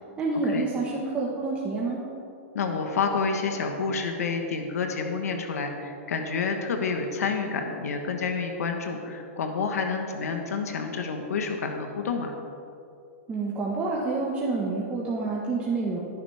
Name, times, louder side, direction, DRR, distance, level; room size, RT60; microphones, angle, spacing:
voice 1, 0.2-2.0 13.3-16.0, right 3 dB, 15° right, -5 dB, 1.4 m, -28 dB
voice 2, 2.5-12.3, left 5 dB, 85° left, 4 dB, 1.4 m, -29 dB
17.0 x 10.0 x 3.6 m, 2.6 s
hypercardioid pair, 150°, 8 cm